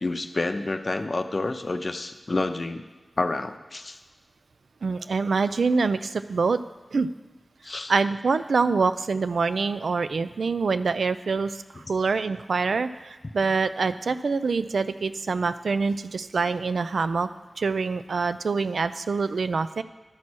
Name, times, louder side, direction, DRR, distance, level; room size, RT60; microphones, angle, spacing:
voice 1, 0.0-2.8 3.2-4.0 7.6-7.9, left 2 dB, 50° left, 8 dB, 0.6 m, -29 dB
voice 2, 4.8-6.6 6.9-7.1 7.9-17.3 17.6-19.8, right 4 dB, 90° right, 12 dB, 0.3 m, -25 dB
12.0 x 4.3 x 6.1 m, 1.3 s
wide cardioid pair, 55°, 0 cm